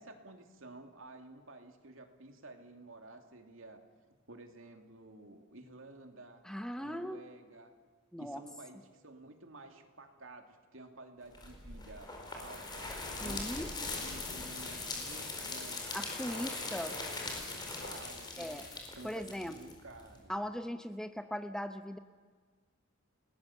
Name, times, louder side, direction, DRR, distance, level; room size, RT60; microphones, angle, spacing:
voice 1, 0.0-3.8 4.3-6.4 6.8-7.7 8.2-15.8 16.3-18.6 18.9-20.3, right 2 dB, 65° right, 5 dB, 2.6 m, -52 dB
voice 2, 6.4-7.2 8.1-8.4 13.2-13.7 15.9-16.9 18.4-18.7 19.0-19.5 20.3-22.0, equal, 5° left, 8 dB, 0.8 m, -39 dB
sound 1, 11.3-20.2, left 3 dB, 20° left, 4.4 m, -41 dB
30.0 x 20.0 x 7.2 m, 1.5 s
head